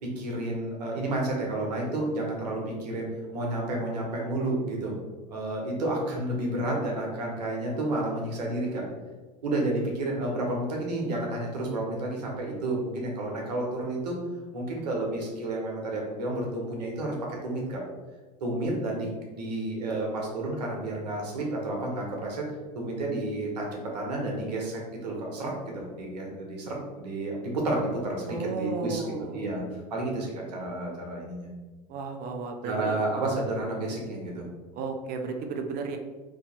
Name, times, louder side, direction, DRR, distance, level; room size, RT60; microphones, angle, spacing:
voice 1, 0.0-4.9 5.3-8.8 9.4-14.2 14.5-17.1 17.4-17.8 18.4-31.5 32.6-34.4, right 2 dB, 80° right, -1 dB, 1.1 m, -31 dB
voice 2, 28.3-29.5 31.9-33.0 33.3-33.4 34.7-36.0, right 4 dB, 45° right, 4 dB, 0.6 m, -34 dB
2.8 x 2.7 x 4.2 m, 1.3 s
hypercardioid pair, 85°, 21 cm